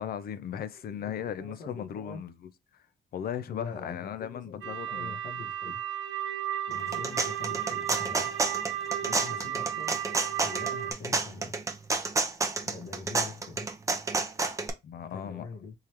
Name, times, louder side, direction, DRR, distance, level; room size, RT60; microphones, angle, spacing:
voice 1, 0.0-2.8 3.1-5.2 14.8-15.5, left 9 dB, 50° left, 0.4 m, -37 dB
voice 2, 0.9-2.2 3.5-5.8 6.7-8.3 8.6-11.6 12.6-13.7 15.1-15.7, left 4 dB, 90° left, 1.4 m, -44 dB
sound 1, 4.6-10.9, right 10 dB, 75° right, 0.8 m, -34 dB
sound 2, 6.7-14.7, right 3 dB, 15° right, 0.5 m, -30 dB
3.7 x 3.2 x 2.9 m
wide cardioid pair, 170°, 20 cm